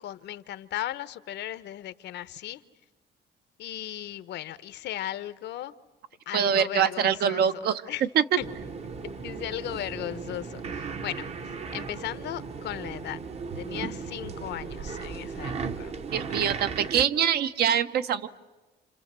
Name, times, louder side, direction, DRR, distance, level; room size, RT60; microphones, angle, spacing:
voice 1, 0.0-2.6 3.6-5.7 6.3-7.4 7.9-8.0 8.4-8.5 9.2-13.2 13.6-15.9 16.3-16.5, left 13 dB, 65° left, 14 dB, 0.9 m, -36 dB
voice 2, 6.3-7.8 8.1-8.2 16.1-18.3, right 8 dB, 55° right, 11 dB, 0.9 m, -24 dB
sound 1, 8.4-17.0, right 5 dB, 35° right, 0.9 m, -36 dB
28.5 x 27.0 x 7.5 m, 1.2 s
cardioid pair, 170°, 19 cm